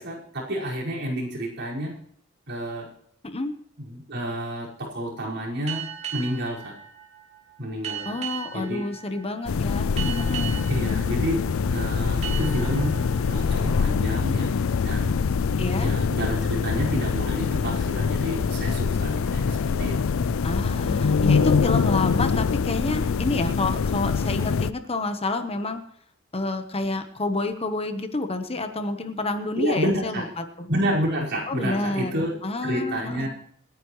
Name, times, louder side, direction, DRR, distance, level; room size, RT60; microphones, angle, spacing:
voice 1, 0.0-1.9 2.5-2.9 3.9-5.9 6.1-6.7 7.6-8.2 8.5-8.8 10.7-14.6 14.8-15.2 15.8-20.2 29.6-30.3 30.7-32.3 32.6-33.3, equal, 55° right, -4 dB, 5.3 m, -29 dB
sound 1, 5.7-15.0, right 10 dB, 30° right, 3.5 m, -38 dB
voice 2, 8.0-10.7 15.6-15.9 20.4-25.8 26.3-30.7 31.5-33.3, left 2 dB, 30° left, 8 dB, 1.1 m, -29 dB
sound 2, 9.5-24.7, left 5 dB, 70° left, 0.5 m, -24 dB
27.5 x 9.7 x 3.2 m, 0.67 s
head